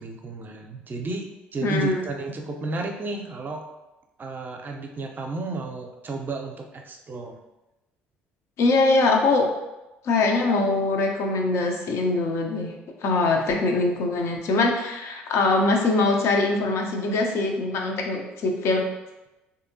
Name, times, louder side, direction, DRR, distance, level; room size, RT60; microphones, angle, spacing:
voice 1, 0.0-3.7 4.2-7.4, right 2 dB, 35° right, 3 dB, 0.5 m, -33 dB
voice 2, 1.6-2.0 8.6-9.5 10.0-12.7 13.0-18.8, left 3 dB, 60° left, 2 dB, 0.6 m, -22 dB
3.4 x 2.7 x 2.6 m, 1.0 s
hypercardioid pair, 55°, 5 cm